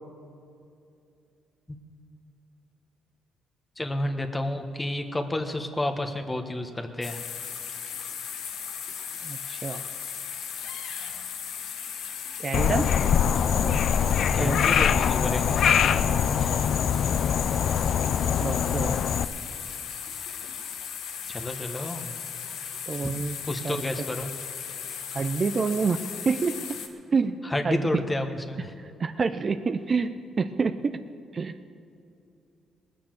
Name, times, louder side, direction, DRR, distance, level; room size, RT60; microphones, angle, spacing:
voice 1, 3.8-7.2 14.3-15.7 16.4-16.6 21.3-22.1 23.0-23.1 23.5-24.3 27.4-28.7, left 1 dB, 15° left, 5 dB, 1.2 m, -30 dB
sound 1, 7.0-26.9, left 7 dB, 85° left, 1.2 m, -37 dB
voice 2, 9.2-9.8 12.4-12.9 13.5-13.8 14.4-14.6 15.9-16.5 18.4-19.0 22.9-23.4 23.6-23.8 25.1-26.8 27.1-28.0 29.0-31.0 31.3-31.6, right 4 dB, 40° right, 10 dB, 0.6 m, -28 dB
Frog, 12.5-19.2, left 8 dB, 65° left, 0.4 m, -23 dB
19.0 x 6.9 x 7.6 m, 2.6 s
cardioid pair, 90°, 0 cm